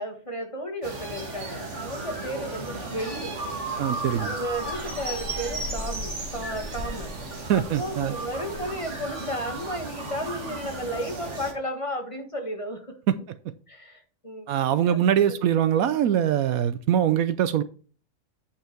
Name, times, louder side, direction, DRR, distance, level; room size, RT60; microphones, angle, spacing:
voice 1, 0.0-3.4 4.2-13.0 13.7-14.5 14.9-15.4, equal, 20° left, 1.4 m, -34 dB
sound 1, 0.8-11.5, right 2 dB, 50° right, 2.1 m, -34 dB
voice 2, 3.8-4.3 7.5-8.1 13.1-13.2 14.5-17.6, right 10 dB, 70° right, 1.0 m, -23 dB
8.9 x 5.8 x 4.4 m
omnidirectional pair, 1.6 m